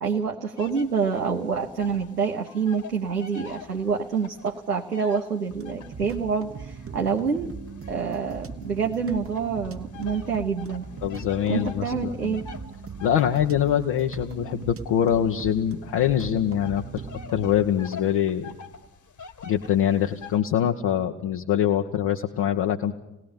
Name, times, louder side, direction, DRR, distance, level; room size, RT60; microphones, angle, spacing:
voice 1, 0.0-7.5 7.9-10.9 11.5-12.5, right 5 dB, 90° right, 1 dB, 0.9 m, -27 dB
sound 1, 0.6-2.1 2.4-6.1 6.7-8.7 9.3-20.4, left 5 dB, 40° left, 1.9 m, -45 dB
sound 2, 5.5-17.6, right 5 dB, 30° right, 1.4 m, -40 dB
voice 2, 11.0-12.4 13.0-17.0 17.3-18.5 19.4-22.9, left 10 dB, 60° left, 3 dB, 1.4 m, -24 dB
29.0 x 18.5 x 5.3 m, 0.92 s
figure-of-eight pair, 40°, 45 cm